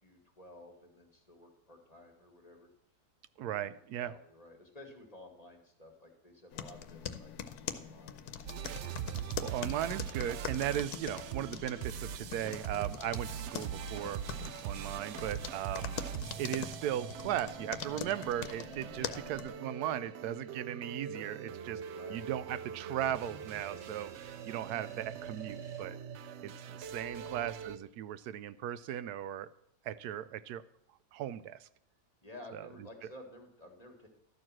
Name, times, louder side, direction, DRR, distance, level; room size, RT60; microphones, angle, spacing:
voice 1, 0.0-2.7 3.4-3.7 4.0-8.2 10.6-10.8 15.7-15.9 19.0-19.6 21.9-22.2 27.1-27.3 32.2-34.1, left 1 dB, 25° left, 2 dB, 1.5 m, -53 dB
voice 2, 3.4-4.1 9.4-14.2 14.6-15.9 16.4-21.8 22.1-26.0 26.4-29.5 29.8-30.6 31.1-31.7 32.5-32.7, right 11 dB, 90° right, 15 dB, 1.1 m, -37 dB
sound 1, 6.5-19.5, left 9 dB, 90° left, 1.2 m, -43 dB
sound 2, 8.5-27.8, right 9 dB, 65° right, 0.7 m, -42 dB
sound 3, 23.0-26.1, left 1 dB, ahead, 0.8 m, -58 dB
12.5 x 4.7 x 7.4 m, 0.76 s
omnidirectional pair, 1.6 m